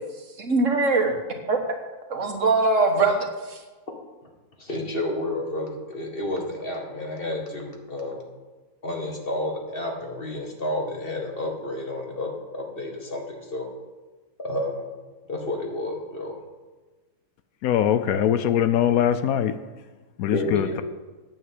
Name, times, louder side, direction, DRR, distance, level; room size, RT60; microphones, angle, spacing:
voice 1, 0.4-1.1 1.5-1.6 2.1-3.6, right 3 dB, 60° right, 4 dB, 1.7 m, -22 dB
voice 2, 4.6-8.2 8.8-13.7 14.4-14.9 15.3-16.4 20.3-20.8, left 1 dB, 40° left, 1 dB, 1.9 m, -30 dB
voice 3, 17.6-19.5 20.2-20.8, left 10 dB, 75° left, 12 dB, 1.0 m, -22 dB
9.2 x 8.6 x 7.6 m, 1.3 s
omnidirectional pair, 1.5 m